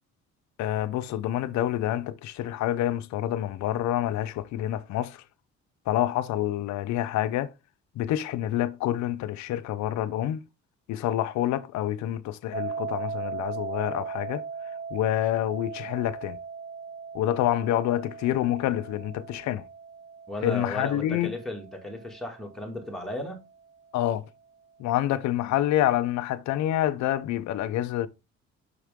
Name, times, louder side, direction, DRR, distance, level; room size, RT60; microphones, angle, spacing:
voice 1, 0.6-5.1 5.9-7.5 8.0-10.4 10.9-14.4 14.9-16.4 17.1-19.6 20.4-21.3 23.9-24.2 24.8-28.1, left 13 dB, 75° left, 0.7 m, -27 dB
sound 1, 12.5-23.4, right 5 dB, 20° right, 0.8 m, -39 dB
voice 2, 20.3-23.4, left 1 dB, ahead, 2.4 m, -35 dB
6.5 x 5.5 x 3.6 m
cardioid pair, 95°, 29 cm